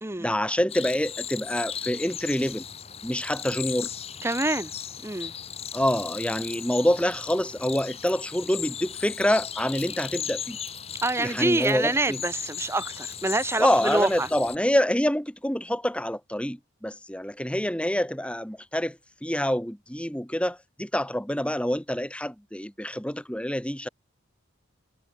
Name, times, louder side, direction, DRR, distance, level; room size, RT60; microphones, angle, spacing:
voice 1, 0.2-2.7 3.0-3.9 5.7-10.6 11.2-12.2 13.6-23.9, equal, 5° left, 2.0 m, -26 dB
sound 1, 0.7-14.6, left 8 dB, 30° left, 1.1 m, -37 dB
voice 2, 4.2-4.7 5.0-5.3 11.0-14.3, right 2 dB, 10° right, 0.7 m, -26 dB
Keys jangling, 5.8-8.6 8.9-11.0 11.3-13.5, right 15 dB, 50° right, 6.0 m, -55 dB
head